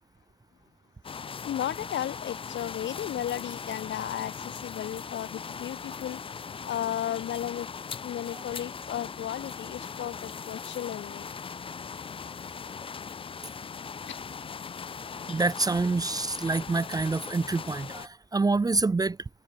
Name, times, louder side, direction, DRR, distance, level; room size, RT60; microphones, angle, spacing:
sound 1, 1.0-18.1, left 6 dB, 25° left, 0.5 m, -39 dB
voice 1, 1.4-6.2 6.6-7.7 8.0-11.3 14.1-14.2, left 11 dB, 65° left, 1.7 m, -34 dB
voice 2, 15.0-19.3, right 3 dB, 20° right, 0.6 m, -27 dB
cardioid pair, 90°, 20 cm